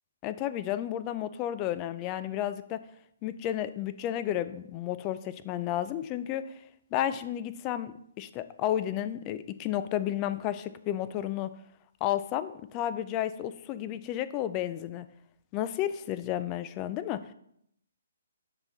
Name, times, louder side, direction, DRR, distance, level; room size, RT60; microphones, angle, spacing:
voice 1, 0.2-2.8 3.2-6.4 6.9-11.5 12.0-15.1 15.5-17.2, left 12 dB, 25° left, 13 dB, 0.4 m, -32 dB
7.2 x 5.8 x 3.9 m, 0.73 s
hypercardioid pair, 155°, 0 cm